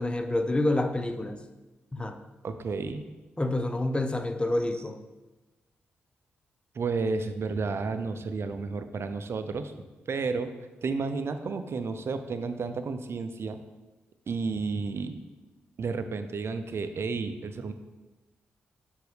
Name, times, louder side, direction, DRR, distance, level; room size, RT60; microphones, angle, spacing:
voice 1, 0.0-1.4 1.9-2.2 3.4-5.0, left 2 dB, 20° left, 8 dB, 0.6 m, -28 dB
voice 2, 2.4-3.0 6.7-9.7 10.1-13.6 14.3-15.2 15.8-17.7, right 4 dB, 55° right, 9 dB, 0.5 m, -32 dB
6.7 x 5.3 x 3.3 m, 1.1 s
supercardioid pair, 40°, 5 cm